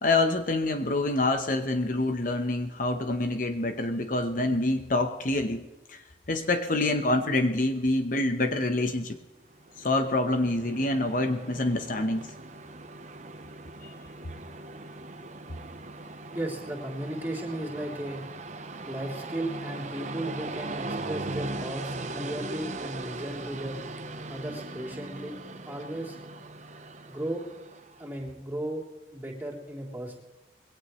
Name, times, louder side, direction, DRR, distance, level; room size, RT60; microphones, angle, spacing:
voice 1, 0.0-6.0 6.3-9.2 9.8-12.2 13.8-13.9, left 2 dB, 45° left, 7 dB, 1.0 m, -26 dB
Train, 9.5-28.1, right 2 dB, 40° right, 0.9 m, -39 dB
voice 2, 16.3-18.2 18.9-23.8 24.3-25.4 25.6-26.2 27.1-27.4 28.0-28.8 29.1-30.2, right 1 dB, 10° right, -3 dB, 3.3 m, -35 dB
21.0 x 17.5 x 3.2 m, 1.1 s
head